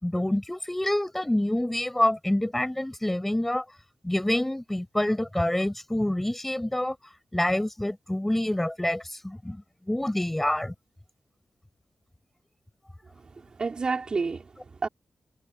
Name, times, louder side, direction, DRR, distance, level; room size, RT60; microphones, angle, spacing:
voice 1, 0.0-3.6 4.0-7.0 7.3-10.7, left 1 dB, 10° left, 5.3 m, -27 dB
voice 2, 13.1-14.9, right 4 dB, 45° right, 4.1 m, -31 dB
wide cardioid pair, 105°, 2 cm